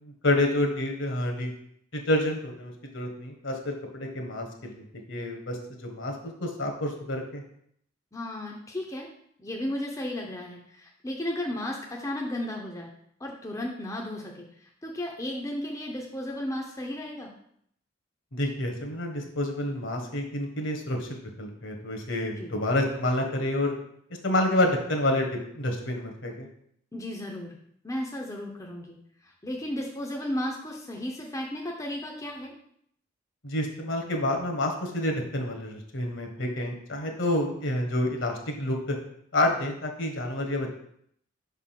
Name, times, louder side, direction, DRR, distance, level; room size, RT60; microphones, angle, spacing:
voice 1, 0.0-1.5 1.9-7.4 18.3-23.7 24.2-25.3 25.5-26.5 33.4-39.0 39.3-40.7, left 1 dB, 65° left, 2 dB, 1.3 m, -28 dB
voice 2, 8.1-9.1 9.4-12.9 13.2-17.3 22.4-22.6 26.9-27.6 27.8-29.0 29.2-32.5, left 1 dB, 15° left, -1 dB, 0.7 m, -34 dB
5.4 x 3.6 x 5.7 m, 0.69 s
head